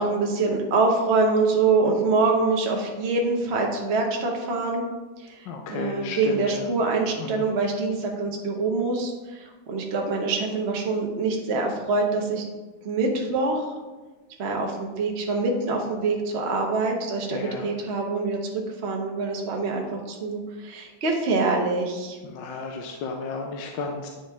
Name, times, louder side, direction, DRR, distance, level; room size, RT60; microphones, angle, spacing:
voice 1, 0.0-4.8 5.2-12.5 12.8-13.6 14.4-22.2, right 3 dB, 45° right, 0 dB, 0.9 m, -25 dB
voice 2, 5.5-6.6 7.2-7.4 17.3-17.7 22.2-24.1, left 4 dB, 75° left, 2 dB, 1.3 m, -33 dB
9.4 x 4.5 x 3.5 m, 1.2 s
omnidirectional pair, 2.2 m